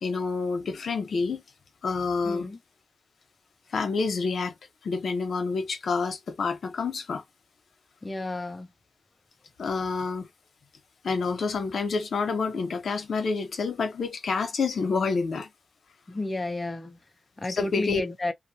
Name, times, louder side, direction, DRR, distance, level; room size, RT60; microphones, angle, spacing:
voice 1, 0.0-1.4 1.8-2.5 3.7-4.5 4.8-7.2 9.6-10.3 11.0-15.5 17.5-18.0, left 4 dB, 70° left, 0.9 m, -28 dB
voice 2, 2.2-2.6 8.0-8.7 16.1-17.0 17.4-18.3, left 2 dB, 25° left, 0.7 m, -31 dB
2.5 x 2.4 x 2.8 m
cardioid pair, 65°, 0 cm